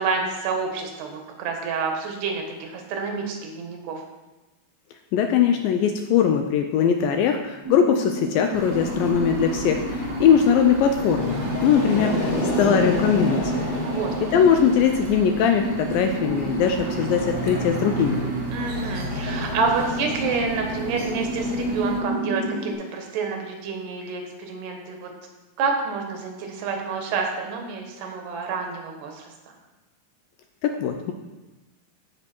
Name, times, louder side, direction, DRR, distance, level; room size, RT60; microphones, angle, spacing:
voice 1, 0.0-4.0 13.8-14.3 18.5-25.1 25.6-29.3, right 4 dB, 85° right, 2 dB, 3.5 m, -28 dB
voice 2, 5.1-12.3 12.6-13.6 14.3-18.2 30.6-31.1, left 7 dB, 80° left, 5 dB, 2.1 m, -21 dB
sound 1, 7.6-22.7, right 2 dB, 10° right, 1.6 m, -30 dB
sound 2, 8.5-22.0, right 3 dB, 60° right, 1.6 m, -36 dB
Growling, 8.6-10.4 10.9-15.1 16.0-22.6, left 3 dB, 60° left, 2.8 m, -33 dB
15.0 x 5.7 x 4.4 m, 1.1 s
omnidirectional pair, 4.6 m